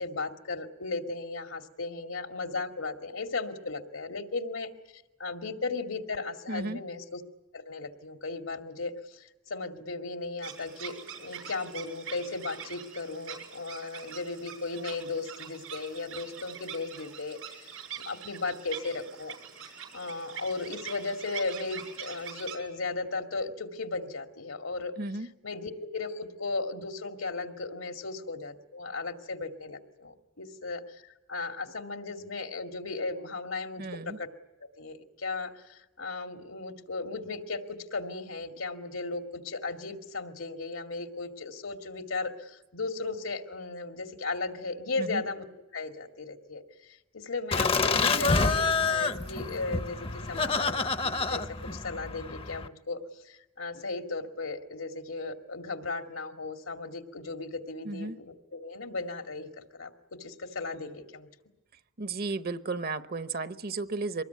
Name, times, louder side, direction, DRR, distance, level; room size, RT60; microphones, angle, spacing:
voice 1, 0.0-4.7 5.2-7.2 7.5-19.4 19.9-24.9 25.4-34.3 34.8-45.4 45.7-51.4 51.7-53.0 53.2-59.9 60.2-61.3, left 3 dB, 80° left, 6 dB, 2.2 m, -36 dB
voice 2, 6.5-6.8 25.0-25.3 33.8-34.2 45.0-45.2 57.8-58.2 62.0-64.2, right 3 dB, 45° right, 12 dB, 0.9 m, -34 dB
sound 1, 10.4-22.6, right 8 dB, 85° right, 6.2 m, -44 dB
Laughter, 47.5-52.7, left 4 dB, 25° left, 0.8 m, -28 dB
24.5 x 20.0 x 9.4 m, 1.0 s
head